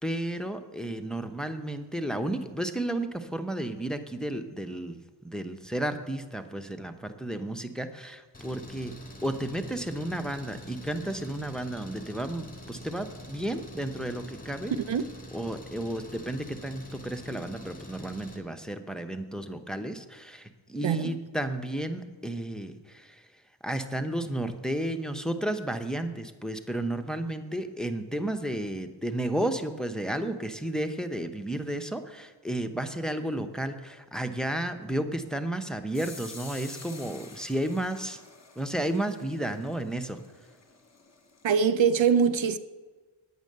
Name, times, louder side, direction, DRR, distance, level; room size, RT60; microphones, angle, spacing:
voice 1, 0.0-5.0 5.2-8.9 9.2-14.7 15.3-23.2 23.6-38.2 38.6-40.2, right 1 dB, ahead, 0.8 m, -32 dB
Engine, 8.3-18.4, left 1 dB, 15° left, 2.1 m, -45 dB
voice 2, 20.8-21.2 41.4-42.6, right 6 dB, 70° right, 0.6 m, -23 dB
sound 1, 35.9-41.6, left 4 dB, 35° left, 1.4 m, -49 dB
9.4 x 9.0 x 6.6 m
wide cardioid pair, 65°, 48 cm